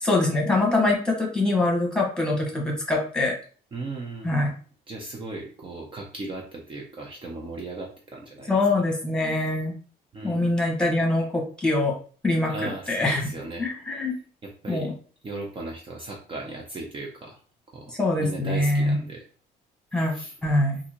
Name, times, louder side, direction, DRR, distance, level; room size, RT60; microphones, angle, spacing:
voice 1, 0.0-3.3 4.2-4.5 8.5-9.7 10.2-11.9 12.2-13.2 13.6-14.1 14.7-14.9 17.9-19.0 19.9-20.1 20.4-20.8, left 2 dB, 5° left, 0 dB, 1.3 m, -24 dB
voice 2, 3.7-4.4 4.9-8.6 10.1-10.5 12.5-13.7 14.4-14.9 15.2-17.4 17.7-19.2 20.1-20.3, right 2 dB, 30° right, -1 dB, 0.7 m, -37 dB
3.7 x 2.7 x 3.0 m, 0.42 s
cardioid pair, 110°, 17 cm